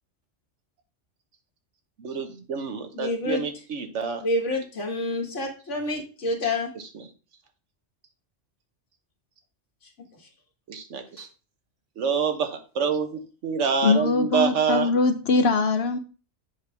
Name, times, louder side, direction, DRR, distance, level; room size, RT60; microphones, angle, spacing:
voice 1, 2.0-4.2 10.7-11.3 12.0-14.9, right 6 dB, 80° right, 6 dB, 1.4 m, -27 dB
voice 2, 2.9-3.4 4.2-6.7 10.1-10.3 11.2-11.3, left 2 dB, 80° left, 0 dB, 1.8 m, -28 dB
voice 3, 13.8-16.0, left 4 dB, 60° left, 9 dB, 0.9 m, -22 dB
7.3 x 5.3 x 3.4 m, 0.35 s
omnidirectional pair, 1.2 m